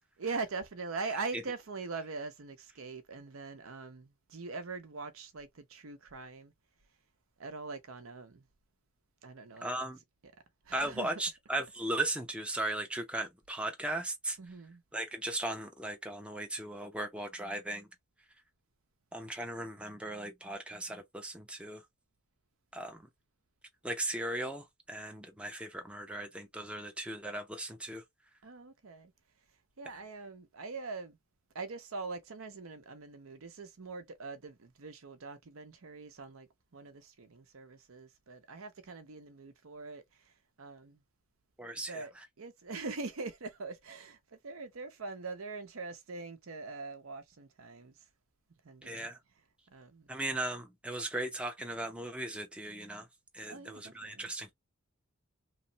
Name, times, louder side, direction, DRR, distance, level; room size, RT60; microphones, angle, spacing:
voice 1, 0.2-6.5 7.4-8.4 9.2-9.7 10.7-11.1 14.4-14.8 28.4-29.1 29.8-31.2 31.5-41.0 41.9-48.0 48.6-49.1 49.7-50.1 53.5-54.3, right 4 dB, 75° right, 0.7 m, -42 dB
voice 2, 9.6-10.0 10.7-14.4 14.9-17.9 19.1-21.8 22.7-23.0 23.8-28.0 41.6-42.3 48.8-49.2 50.1-53.1 53.3-54.5, right 1 dB, 5° right, 0.5 m, -37 dB
3.1 x 2.0 x 2.7 m
head